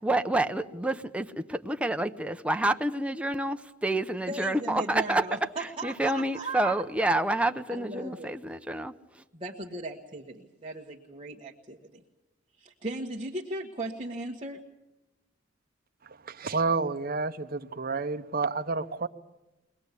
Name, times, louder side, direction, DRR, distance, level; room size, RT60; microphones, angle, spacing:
voice 1, 0.0-9.2, right 1 dB, 5° right, 0.7 m, -28 dB
voice 2, 4.3-6.8 7.7-8.3 9.3-12.0 12.6-14.6, right 2 dB, 30° right, 1.4 m, -37 dB
voice 3, 16.3-19.1, right 4 dB, 50° right, 0.9 m, -29 dB
23.0 x 19.5 x 8.3 m
head